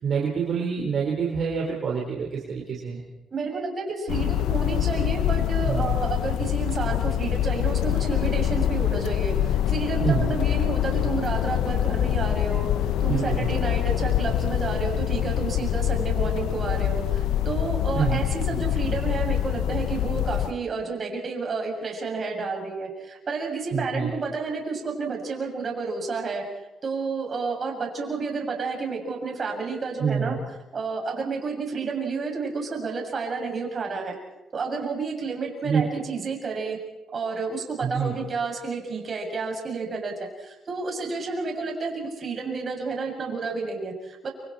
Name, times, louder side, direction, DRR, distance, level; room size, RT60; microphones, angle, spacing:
voice 1, 0.0-3.0 5.7-5.9 10.0-10.3 13.1-13.4 17.9-18.2 23.7-24.1 30.0-30.4 35.6-35.8 37.8-38.1, right 6 dB, 60° right, -2 dB, 4.3 m, -26 dB
voice 2, 3.3-12.7 13.0-26.4 26.8-30.4 30.7-34.1 34.5-36.8 37.1-44.3, right 4 dB, 45° right, 1 dB, 7.1 m, -30 dB
wind light calm soft breeze deep big gusty, 4.1-20.5, left 11 dB, 90° left, 0.9 m, -25 dB
29.5 x 26.0 x 4.4 m, 1.0 s
cardioid pair, 90°, 0 cm